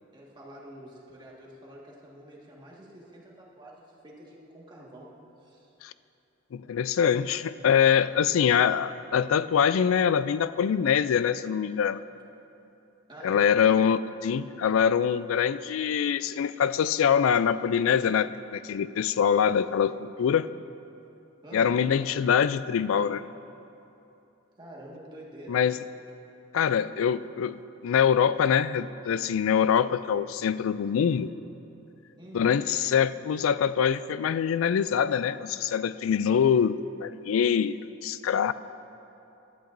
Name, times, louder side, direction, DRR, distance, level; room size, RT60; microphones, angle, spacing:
voice 1, 0.1-5.1 5.4-5.7 13.1-13.5 21.4-21.9 24.6-25.6 32.2-32.7, right 1 dB, 25° right, -4 dB, 1.7 m, -47 dB
voice 2, 6.5-12.0 13.2-20.5 21.5-23.2 25.5-25.7 26.5-31.3 32.3-38.5, left 7 dB, 85° left, 15 dB, 0.3 m, -24 dB
16.0 x 12.0 x 2.6 m, 2.9 s
head